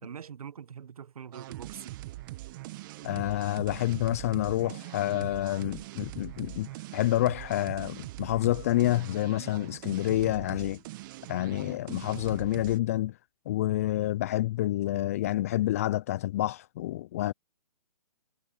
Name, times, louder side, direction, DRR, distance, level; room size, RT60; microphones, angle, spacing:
voice 1, 0.0-2.0 11.9-12.0, right 7 dB, 65° right, 1.5 m, -44 dB
sound 1, 1.3-12.8, right 18 dB, 30° right, 1.2 m, -42 dB
voice 2, 3.0-10.8 11.3-13.1 13.5-17.3, left 15 dB, 25° left, 0.3 m, -28 dB
hypercardioid pair, 145°, 20 cm